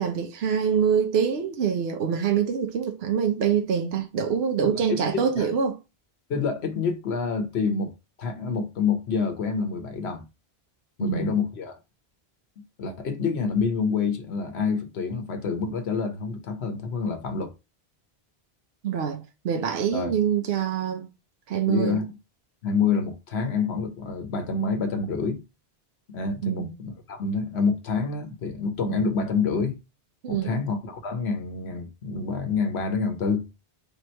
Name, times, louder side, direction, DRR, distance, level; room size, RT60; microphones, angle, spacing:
voice 1, 0.0-5.8 11.0-11.3 18.8-21.1 21.5-22.0 26.4-26.7 30.2-30.5, right 7 dB, 80° right, 0.9 m, -25 dB
voice 2, 4.6-5.5 6.3-7.9 8.2-10.3 11.0-11.8 12.8-17.5 19.9-20.1 21.7-22.2 22.6-25.4 26.1-29.8 30.3-33.5, left 5 dB, 90° left, 1.1 m, -27 dB
3.4 x 3.0 x 4.3 m
omnidirectional pair, 1.1 m